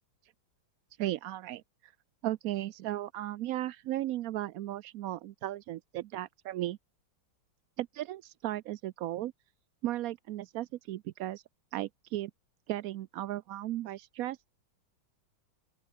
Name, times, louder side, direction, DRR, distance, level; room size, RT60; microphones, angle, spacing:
voice 1, 1.0-1.9 2.2-6.8 7.8-9.3 9.8-11.4 11.7-12.3 12.7-14.4, right 14 dB, 85° right, 0.7 m, -36 dB
open air
omnidirectional pair, 2.1 m